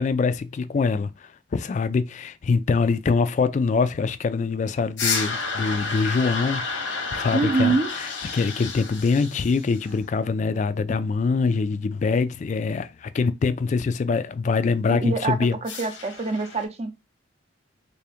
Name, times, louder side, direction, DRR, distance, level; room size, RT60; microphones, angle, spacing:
voice 1, 0.0-15.6, left 4 dB, 40° left, 0.3 m, -24 dB
sound 1, 5.0-10.0 15.7-16.6, left 4 dB, 90° left, 1.0 m, -30 dB
voice 2, 7.3-7.9 14.9-15.4 15.6-16.9, right 3 dB, 35° right, 0.5 m, -24 dB
3.4 x 2.8 x 3.4 m
head